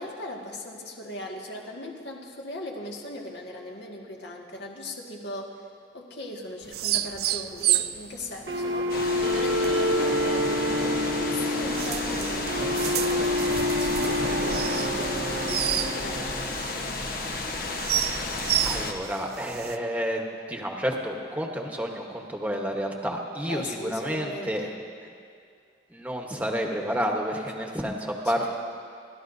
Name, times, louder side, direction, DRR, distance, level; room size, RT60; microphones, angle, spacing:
voice 1, 0.0-5.6 5.9-8.9 9.2-16.4 23.5-24.7 28.2-28.6, left 1 dB, 70° left, -1 dB, 1.9 m, -38 dB
sound 1, 6.6-19.8, right 12 dB, 55° right, 0.4 m, -31 dB
sound 2, 8.5-16.5, left 1 dB, 75° right, 1.3 m, -27 dB
sound 3, 8.9-18.9, left 3 dB, 55° left, 1.1 m, -32 dB
voice 2, 17.8-24.8 25.9-28.6, equal, 10° right, 1 dB, 1.2 m, -30 dB
29.0 x 12.5 x 2.7 m, 2.3 s
head